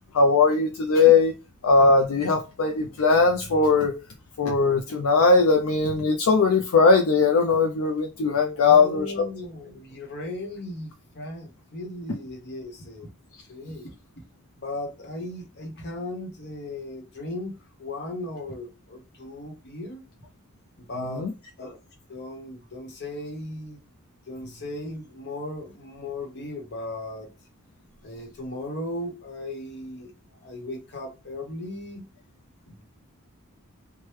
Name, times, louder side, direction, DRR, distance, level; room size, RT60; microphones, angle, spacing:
voice 1, 0.1-1.3 1.6-4.0 4.4-9.3 21.0-21.3, left 4 dB, 70° left, 0.4 m, -20 dB
voice 2, 8.6-13.1 13.5-13.9 14.6-17.5 17.8-20.0 20.9-21.2 21.6-21.8 22.1-23.8 24.3-27.3 28.0-30.1 30.4-32.0 32.7-32.8, left 1 dB, 50° left, 1.0 m, -36 dB
3.1 x 2.2 x 3.1 m
head